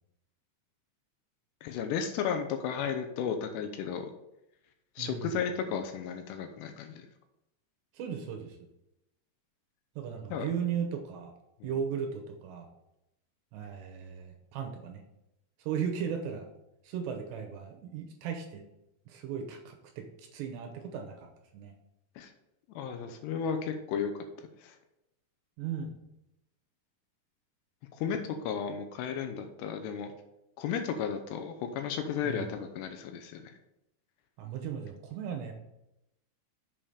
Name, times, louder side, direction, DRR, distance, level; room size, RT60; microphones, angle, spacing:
voice 1, 1.6-4.1 5.0-7.1 10.3-10.5 11.6-11.7 22.2-22.3 22.7-24.1 24.6-24.8 28.0-30.1 30.6-33.5, left 7 dB, 80° left, 6 dB, 2.7 m, -34 dB
voice 2, 5.0-5.4 7.9-8.6 10.0-11.3 11.6-12.7 13.5-15.0 15.6-16.5 16.8-18.6 19.1-21.3 21.5-21.7 25.6-26.0 32.2-32.5 34.4-35.5, right 7 dB, 80° right, 3 dB, 3.0 m, -36 dB
7.1 x 5.5 x 5.0 m, 0.87 s
omnidirectional pair, 5.1 m